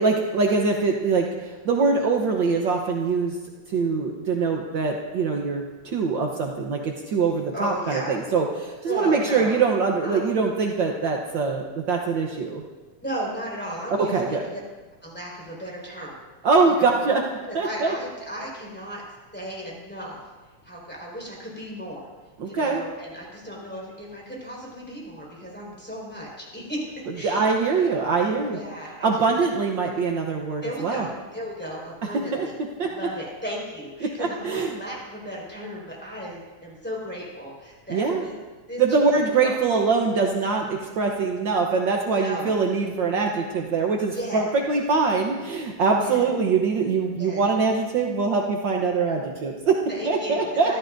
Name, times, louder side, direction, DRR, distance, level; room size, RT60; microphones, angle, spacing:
voice 1, 0.0-3.4 3.7-12.6 14.0-14.5 16.4-17.2 17.5-17.9 22.4-22.8 27.2-28.6 29.0-31.1 32.3-32.5 32.8-32.9 34.0-34.8 37.9-38.2 38.8-50.7, right 4 dB, 70° right, 1 dB, 1.1 m, -23 dB
voice 2, 7.5-8.2 8.8-9.6 10.0-10.3 13.0-14.4 15.0-16.2 16.7-17.1 17.5-19.0 19.3-20.3 20.6-22.1 22.4-26.8 27.1-29.2 30.6-32.5 32.8-38.3 38.7-38.8 39.1-39.8 42.2-42.5 44.1-44.5 46.0-46.3 47.2-47.4 49.9-50.8, equal, 5° left, -5 dB, 4.9 m, -35 dB
26.5 x 13.5 x 2.7 m, 1.3 s
omnidirectional pair, 3.5 m